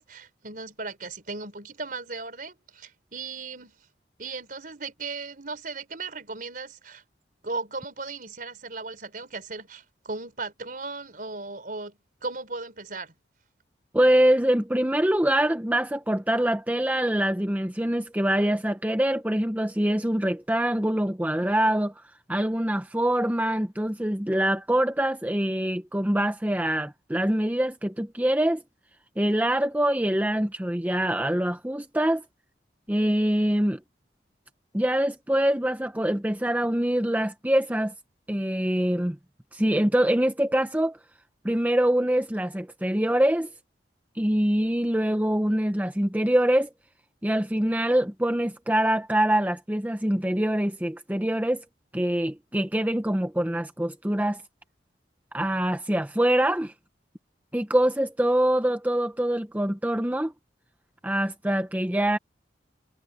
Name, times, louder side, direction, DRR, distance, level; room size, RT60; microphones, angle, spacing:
voice 1, 0.0-3.8 4.2-7.0 7.4-13.1, right 3 dB, 50° right, 4.7 m, -37 dB
voice 2, 13.9-22.0 22.3-28.6 29.2-32.2 32.9-33.8 34.7-37.9 38.3-39.2 39.5-41.0 41.4-43.5 44.2-46.7 47.2-51.6 51.9-54.4 55.3-56.7 57.5-60.3 61.0-62.2, right 1 dB, 10° right, 0.7 m, -24 dB
head